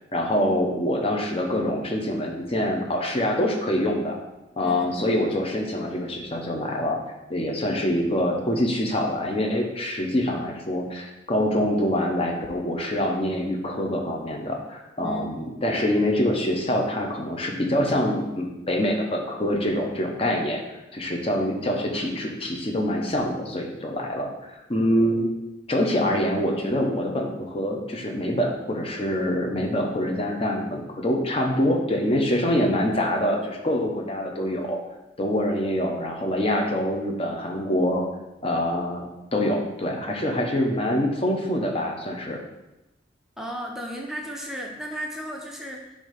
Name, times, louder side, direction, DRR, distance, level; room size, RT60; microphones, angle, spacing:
voice 1, 0.1-4.2 4.6-7.0 7.3-20.6 20.9-25.3 25.7-34.8 35.2-38.1 38.4-39.0 39.3-42.4, left 1 dB, 30° left, 1 dB, 0.8 m, -25 dB
voice 2, 4.6-5.1 15.0-15.3 43.4-45.9, right 1 dB, ahead, -1 dB, 0.7 m, -34 dB
7.1 x 2.7 x 5.0 m, 0.96 s
head